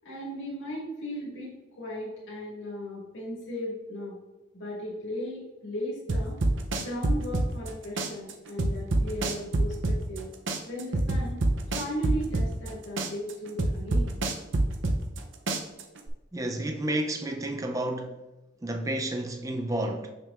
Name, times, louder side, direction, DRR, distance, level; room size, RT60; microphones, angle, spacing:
voice 1, 0.0-4.2 4.5-6.4 6.7-10.3 10.6-11.4 11.7-14.2, equal, 65° left, 2.0 m, -36 dB
sound 1, 6.1-7.7 8.0-10.2 10.5-12.7 13.0-15.2 15.5-16.1, right 2 dB, 70° right, 0.6 m, -26 dB
voice 2, 16.3-18.2 18.6-20.1, right 1 dB, 15° right, 0.5 m, -31 dB
6.3 x 6.1 x 2.5 m
head